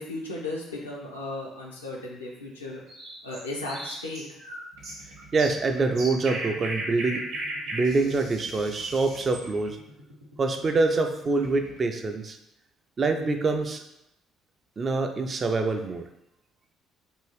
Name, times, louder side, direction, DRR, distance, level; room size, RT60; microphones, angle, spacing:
voice 1, 0.0-2.8 3.2-4.2, left 2 dB, 80° left, -3 dB, 0.5 m, -35 dB
sound 1, 2.9-9.5, right 1 dB, 55° right, 0.8 m, -36 dB
sound 2, 4.7-11.8, right 1 dB, 90° right, 0.6 m, -50 dB
voice 2, 5.3-7.3 7.7-9.8 10.4-12.4 13.0-13.8 14.8-16.0, right 3 dB, 35° right, 6 dB, 0.3 m, -25 dB
2.6 x 2.4 x 3.2 m, 0.83 s
figure-of-eight pair, 50°, 0 cm